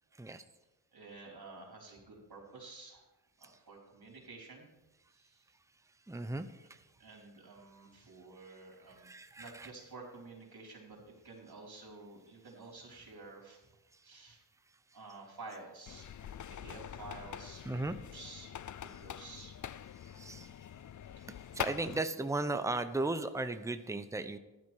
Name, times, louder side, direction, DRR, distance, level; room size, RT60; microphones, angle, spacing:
voice 1, 0.1-0.4 3.4-3.6 6.1-6.9 9.0-9.7 13.9-14.0 17.6-18.0 20.0-20.5 21.5-24.4, right 2 dB, 5° right, 10 dB, 0.8 m, -36 dB
voice 2, 0.9-3.1 3.4-4.7 5.1-5.5 7.0-13.8 14.0-14.4 14.9-17.6 18.1-19.5 19.9-20.1, right 3 dB, 60° right, -2 dB, 4.9 m, -51 dB
sound 1, 15.9-22.0, left 9 dB, 45° left, 0.5 m, -44 dB
14.5 x 11.5 x 4.7 m, 1.0 s
wide cardioid pair, 80°, 42 cm